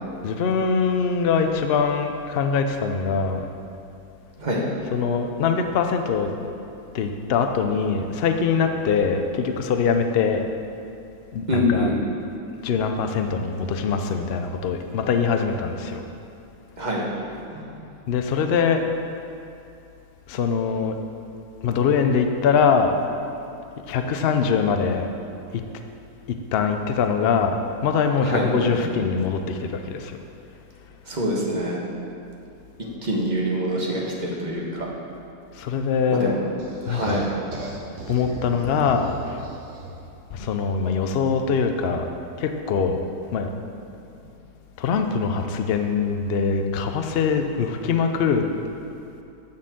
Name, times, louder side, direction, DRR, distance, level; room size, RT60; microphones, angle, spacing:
voice 1, 0.2-3.5 4.8-6.3 6.9-10.4 11.3-11.9 12.6-16.1 18.1-18.8 20.3-21.0 21.6-22.9 23.9-25.1 25.5-25.6 26.3-30.2 35.5-36.4 36.9-37.2 38.1-39.4 40.3-42.1 42.4-43.0 43.3-43.5 44.8-48.4, left 5 dB, 70° left, 6 dB, 0.5 m, -23 dB
voice 2, 11.5-12.0 16.8-17.0 17.5-17.6 28.2-28.8 31.1-31.8 33.0-34.9 36.1-36.4 36.9-37.3, equal, 30° right, -3 dB, 1.3 m, -25 dB
sound 1, 36.6-40.1, right 2 dB, 50° right, 1.4 m, -37 dB
9.9 x 4.3 x 7.4 m, 2.7 s
omnidirectional pair, 1.8 m